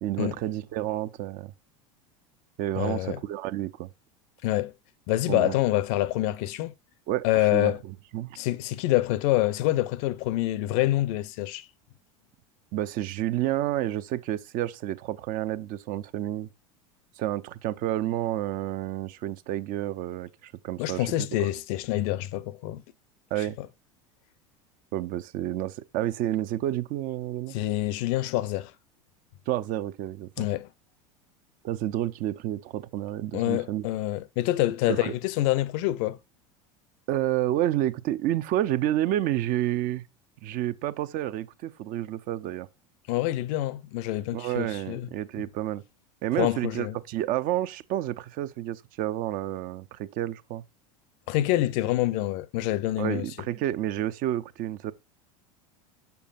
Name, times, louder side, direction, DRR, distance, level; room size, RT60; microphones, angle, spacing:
voice 1, 0.0-1.5 2.6-3.9 5.3-5.6 7.1-8.4 12.7-16.5 17.2-21.5 23.3-23.6 24.9-27.6 29.5-30.5 31.6-33.9 34.9-35.1 37.1-40.0 40.4-42.7 44.3-45.8 46.2-50.6 53.0-54.9, right 13 dB, 50° right, 0.7 m, -30 dB
voice 2, 2.8-3.2 4.4-4.7 5.1-6.7 7.2-7.8 8.4-11.6 20.8-22.8 27.5-28.7 30.4-30.7 33.3-36.2 43.1-45.1 46.4-47.0 51.3-53.3, left 15 dB, 60° left, 0.6 m, -26 dB
6.9 x 6.8 x 2.4 m
hypercardioid pair, 85°, 18 cm